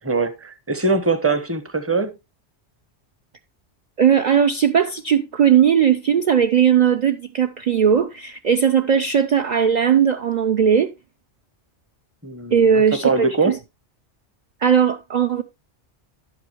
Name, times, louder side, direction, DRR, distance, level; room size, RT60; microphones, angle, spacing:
voice 1, 0.0-2.1 12.2-13.6, right 3 dB, 15° right, 0.9 m, -22 dB
voice 2, 4.0-10.9 12.5-13.6 14.6-15.4, right 8 dB, 45° right, 0.6 m, -18 dB
11.0 x 8.2 x 3.1 m
omnidirectional pair, 1.2 m